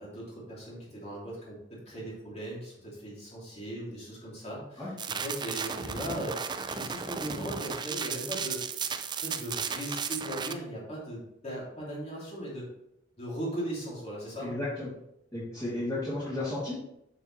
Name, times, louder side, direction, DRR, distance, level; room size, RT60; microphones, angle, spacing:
voice 1, 0.0-8.6 9.2-12.7 13.2-14.5, right 1 dB, 35° left, -5 dB, 2.9 m, -38 dB
sound 1, 5.0-10.5, right 6 dB, 25° right, 0.4 m, -34 dB
voice 2, 14.4-14.9 15.3-16.7, left 2 dB, 15° left, -12 dB, 2.9 m, -33 dB
7.5 x 6.4 x 3.2 m, 0.80 s
head